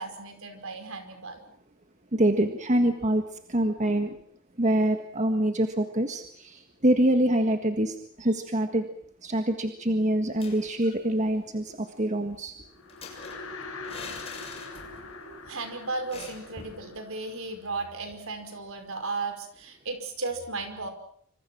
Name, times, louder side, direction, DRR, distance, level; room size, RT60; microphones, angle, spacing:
voice 1, 0.0-1.5 15.0-20.9, right 3 dB, 65° right, 7 dB, 5.3 m, -35 dB
voice 2, 2.1-4.2 4.6-8.9 9.2-12.5, right 1 dB, 30° right, 6 dB, 1.7 m, -25 dB
sound 1, 10.2-11.1 11.3-11.4 11.7-15.2 15.5-15.6 16.1-16.8, left 4 dB, 25° left, 6.7 m, -45 dB
sound 2, 12.7-18.1, left 3 dB, 60° left, 7.5 m, -43 dB
27.5 x 26.0 x 6.2 m, 0.63 s
head